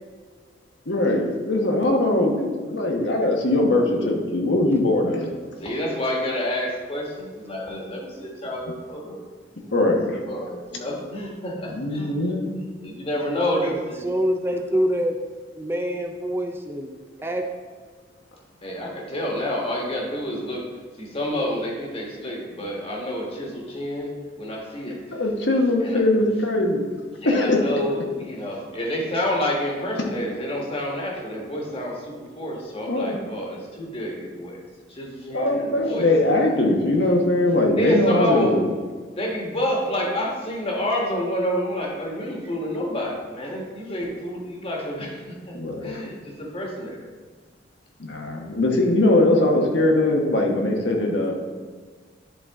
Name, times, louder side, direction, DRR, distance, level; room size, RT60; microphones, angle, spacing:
voice 1, 0.9-5.3 9.7-10.2 11.7-12.4 25.1-26.8 27.2-27.6 32.9-33.2 35.3-38.6 45.5-46.1 48.0-51.3, left 1 dB, 75° left, 0 dB, 1.2 m, -21 dB
voice 2, 5.6-9.2 9.5-9.8 10.3-12.4 12.8-14.1 18.6-20.7 21.0-25.2 25.8-26.0 27.2-36.1 37.7-38.6 39.2-45.6 45.8-47.0, left 1 dB, 30° left, -2 dB, 1.4 m, -29 dB
voice 3, 13.5-15.2 15.6-16.9 17.2-17.5, equal, 15° right, 3 dB, 0.4 m, -25 dB
10.5 x 4.1 x 3.6 m, 1.5 s
head